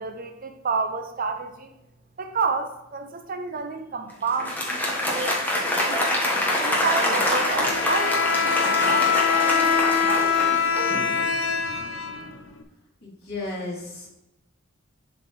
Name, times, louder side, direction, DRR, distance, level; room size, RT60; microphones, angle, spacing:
voice 1, 0.0-1.7 2.2-6.1 6.6-11.3, right 4 dB, 45° right, 6 dB, 0.6 m, -31 dB
Applause, 4.3-11.3, left 1 dB, 10° left, 1.3 m, -25 dB
Bowed string instrument, 7.6-12.6, left 6 dB, 90° left, 0.8 m, -23 dB
voice 2, 13.0-14.1, left 2 dB, 55° left, -5 dB, 2.7 m, -34 dB
11.0 x 4.0 x 3.1 m, 0.89 s
head